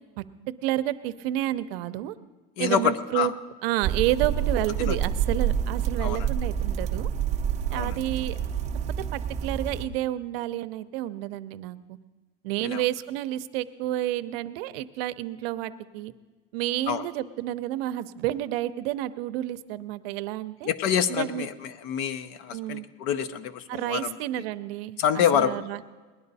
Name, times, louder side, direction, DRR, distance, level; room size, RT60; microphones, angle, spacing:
voice 1, 0.2-2.1 2.6-3.3 3.6-7.1 7.7-8.3 9.1-12.0 12.4-16.1 16.5-20.7 21.1-21.5 22.5-22.8 23.7-25.0 25.3-25.8, right 14 dB, 80° right, 12 dB, 0.6 m, -30 dB
voice 2, 2.6-3.3 4.8-5.0 6.0-6.3 7.7-8.0 12.6-12.9 16.9-17.0 20.6-24.2 25.0-25.6, left 9 dB, 55° left, 13 dB, 0.7 m, -27 dB
sound 1, 3.8-9.9, right 8 dB, 25° right, 0.6 m, -28 dB
19.0 x 10.5 x 4.1 m, 1.3 s
cardioid pair, 165°, 29 cm